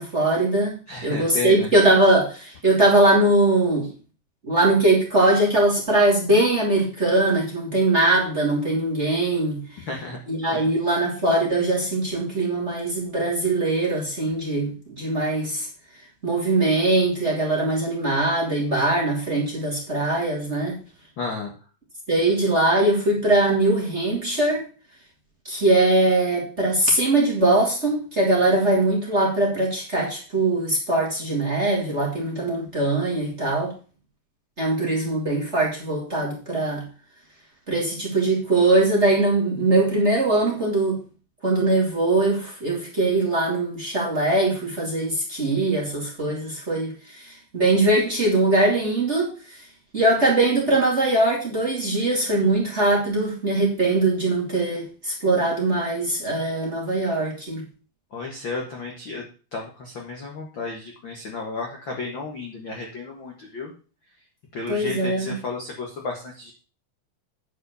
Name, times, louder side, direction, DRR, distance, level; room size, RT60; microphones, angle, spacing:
voice 1, 0.0-3.9 4.5-9.6 10.3-15.7 16.2-20.8 22.1-24.7 25.4-33.7 34.6-36.8 37.7-41.0 41.4-49.6 49.9-57.6 64.7-65.4, right 2 dB, 20° right, -2 dB, 2.2 m, -21 dB
voice 2, 0.9-1.7 9.9-10.2 10.5-10.6 21.2-21.5 58.1-59.2 59.5-63.7 64.5-66.5, left 3 dB, 50° left, 0 dB, 1.4 m, -32 dB
9.9 x 5.2 x 6.8 m, 0.36 s
omnidirectional pair, 4.4 m